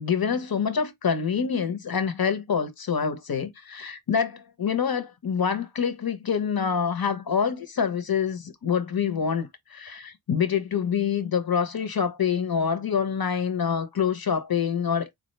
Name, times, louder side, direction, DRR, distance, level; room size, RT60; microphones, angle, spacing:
voice 1, 0.0-15.1, left 7 dB, 70° left, 0.8 m, -26 dB
3.7 x 2.7 x 3.2 m
wide cardioid pair, 50°, 38 cm